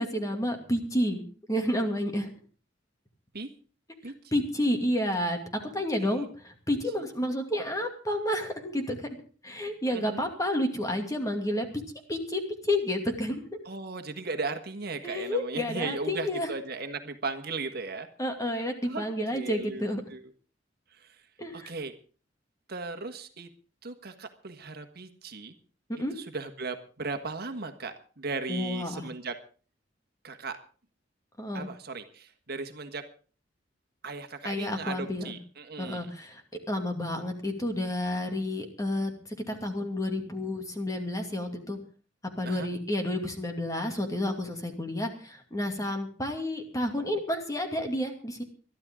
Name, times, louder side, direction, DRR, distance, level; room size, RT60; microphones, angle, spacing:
voice 1, 0.0-2.3 4.3-5.4 5.7-9.1 9.4-11.7 12.1-13.4 15.0-16.5 18.2-20.0 21.4-21.7 26.0-26.1 28.5-29.1 31.4-31.7 34.4-35.4 35.8-36.4 36.7-39.1 39.5-41.8 42.4-48.4, left 1 dB, 20° left, 4 dB, 2.5 m, -30 dB
voice 2, 9.9-10.2 13.6-18.1 18.5-19.0 19.3-19.8 20.1-20.2 20.9-21.2 21.5-21.9 22.7-23.5 23.8-25.5 26.1-29.3 30.2-30.6 31.5-33.1 34.0-36.1 42.4-42.7, right 3 dB, 55° right, 7 dB, 1.6 m, -37 dB
22.0 x 13.0 x 3.8 m, 0.39 s
head